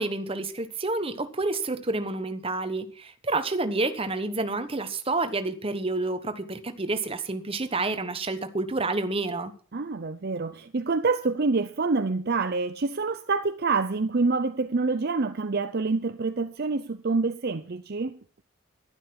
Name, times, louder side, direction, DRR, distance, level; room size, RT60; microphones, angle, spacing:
voice 1, 0.0-9.5, right 2 dB, 25° right, 1.1 m, -29 dB
voice 2, 9.7-18.2, right 3 dB, 45° right, 0.6 m, -27 dB
11.5 x 11.5 x 5.9 m
head